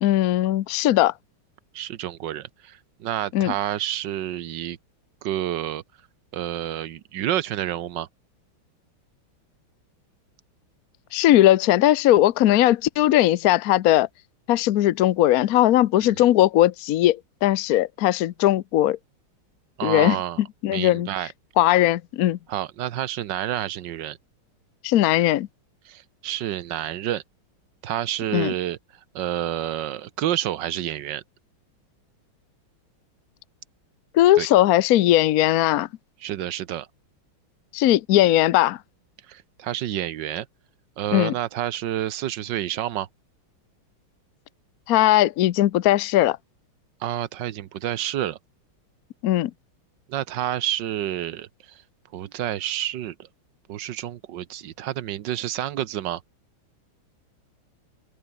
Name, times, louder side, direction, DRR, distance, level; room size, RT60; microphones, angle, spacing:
voice 1, 0.0-1.1 3.3-3.5 11.1-14.1 14.5-19.0 19.8-20.2 20.6-21.1 21.6-22.4 24.8-25.5 28.3-28.5 34.1-35.9 37.7-38.8 41.1-41.3 44.9-46.4 49.2-49.5, left 14 dB, 70° left, 0.8 m, -19 dB
voice 2, 1.7-4.8 5.2-5.8 6.3-8.1 16.0-16.1 19.8-20.4 20.7-21.3 22.5-24.2 25.9-27.2 27.8-28.8 29.1-31.2 34.4-34.5 36.2-36.9 39.3-40.5 41.0-43.1 47.0-48.4 50.1-51.8 52.1-53.3 53.7-56.2, right 12 dB, 65° right, 1.5 m, -29 dB
omnidirectional pair, 2.3 m